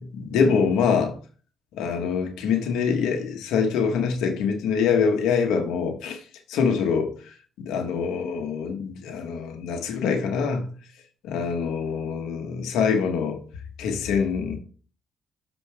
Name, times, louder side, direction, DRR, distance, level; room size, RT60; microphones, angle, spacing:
voice 1, 0.1-1.2 1.7-6.2 6.5-10.7 11.2-13.4 13.8-14.6, left 6 dB, 90° left, 1.2 m, -24 dB
6.2 x 5.3 x 3.4 m
cardioid pair, 90°, 0 cm